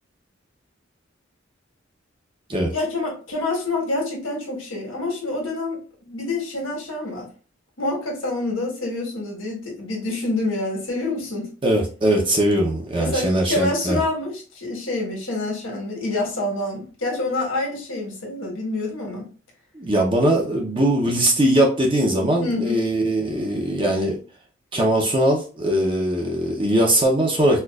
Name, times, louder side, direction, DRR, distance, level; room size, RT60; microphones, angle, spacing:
voice 1, 2.7-7.3 7.8-11.5 13.0-19.3 22.4-22.9, left 2 dB, 85° left, 1.4 m, -27 dB
voice 2, 11.6-14.0 19.7-24.2 24.7-27.6, right 1 dB, 25° right, 0.7 m, -20 dB
4.4 x 2.4 x 2.3 m
head